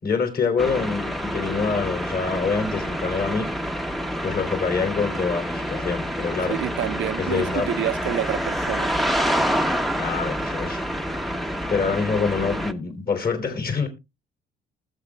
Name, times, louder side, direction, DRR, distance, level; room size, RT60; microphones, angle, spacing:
voice 1, 0.0-3.5 4.2-6.6 7.2-7.7 9.9-10.8 11.7-13.9, left 5 dB, 50° left, 3.0 m, -25 dB
sound 1, 0.6-12.7, equal, ahead, 0.8 m, -27 dB
voice 2, 6.4-8.9, right 11 dB, 70° right, 0.7 m, -28 dB
20.0 x 7.2 x 2.2 m
cardioid pair, 90°, 20 cm